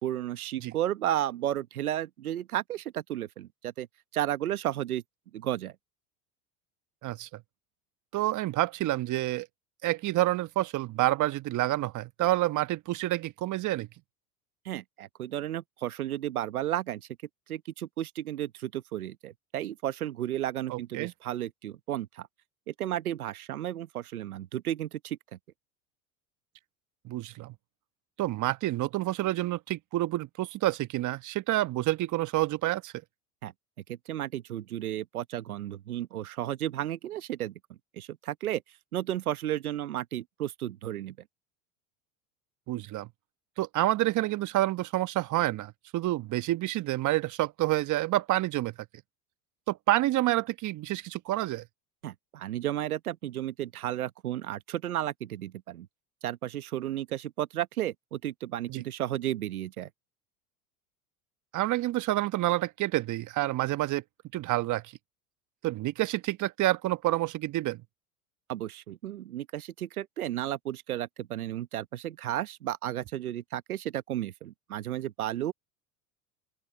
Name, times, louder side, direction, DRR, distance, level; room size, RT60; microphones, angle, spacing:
voice 1, 0.0-3.9 4.1-5.0 5.3-5.7 14.6-17.1 17.5-22.3 22.7-25.2 33.4-33.5 33.9-37.5 38.0-38.6 38.9-41.2 52.0-55.9 56.2-59.9 68.5-75.5, right 12 dB, 90° right, 1.2 m, -33 dB
voice 2, 7.0-7.4 8.1-9.5 9.8-13.9 20.7-21.1 27.0-27.5 28.2-32.9 42.7-43.1 43.6-48.7 49.7-51.6 58.7-58.8 61.5-64.0 64.3-64.9 65.6-67.8, right 16 dB, 45° right, 1.2 m, -28 dB
open air
hypercardioid pair, 85°, 42 cm